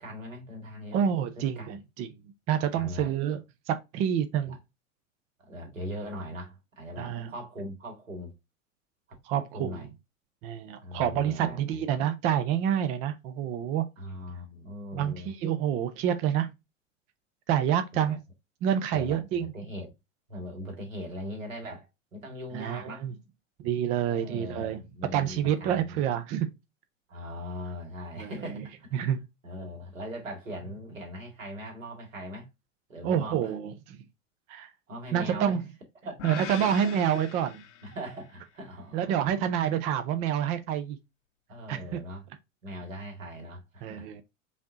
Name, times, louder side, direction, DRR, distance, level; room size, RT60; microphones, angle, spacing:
voice 1, 0.0-1.0 1.4-1.8 2.7-3.1 4.4-4.6 5.4-8.3 9.5-9.9 10.8-11.9 14.0-15.3 17.9-18.2 18.9-19.9 20.3-23.1 23.9-26.0 27.1-29.0 29.4-32.5 32.9-33.5 34.9-35.6 36.0-36.2 36.6-36.9 37.8-39.4 41.5-42.3 42.6-44.1, equal, 75° right, 2.1 m, -40 dB
voice 2, 0.9-2.1 2.5-3.4 3.7-4.6 7.0-7.3 9.3-9.9 10.4-13.8 14.9-16.5 17.5-18.2 18.6-19.5 22.5-23.1 23.6-24.8 25.1-26.5 28.2-28.3 28.9-29.2 33.0-34.0 34.5-34.7 35.1-35.6 36.2-37.6 38.9-41.0 41.7-42.0 43.8-44.2, right 9 dB, 20° right, 0.3 m, -28 dB
sound 1, 36.2-38.4, left 9 dB, 65° left, 0.8 m, -42 dB
5.0 x 2.7 x 3.6 m
figure-of-eight pair, 90°, 39 cm